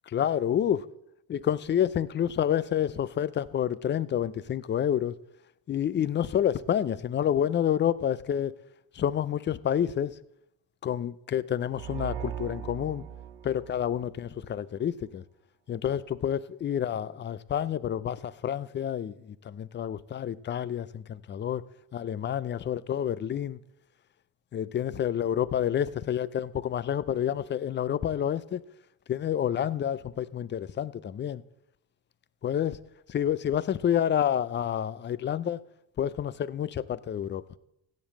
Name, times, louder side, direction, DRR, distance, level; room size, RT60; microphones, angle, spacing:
voice 1, 0.1-0.8 1.3-5.1 5.7-8.5 8.9-10.2 10.8-13.0 13.4-15.2 15.7-21.6 21.9-23.6 24.5-28.6 29.1-31.4 32.4-32.8 33.1-35.6 36.0-37.4, left 9 dB, 25° left, 0.3 m, -29 dB
sound 1, 11.7-14.5, right 9 dB, 65° right, 1.1 m, -39 dB
15.5 x 5.3 x 7.5 m
cardioid pair, 120°, 47 cm